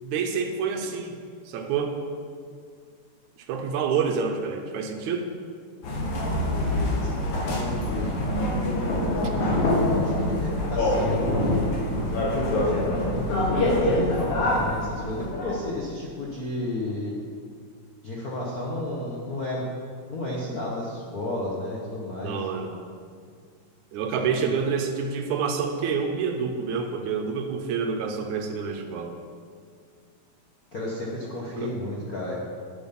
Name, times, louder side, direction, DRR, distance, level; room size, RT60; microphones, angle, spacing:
voice 1, 0.0-1.2 1.5-2.0 3.5-5.3 22.2-22.8 23.9-29.2 31.6-31.7, right 6 dB, 75° right, 4 dB, 2.2 m, -28 dB
sound 1, 5.8-15.7, left 1 dB, 75° left, 3.2 m, -25 dB
voice 2, 7.0-8.2 9.3-11.8 12.8-17.1 18.0-19.6 20.1-22.4 24.2-24.6 30.7-32.3, left 1 dB, 55° left, -5 dB, 1.0 m, -32 dB
10.5 x 7.2 x 5.9 m, 2.1 s
omnidirectional pair, 3.4 m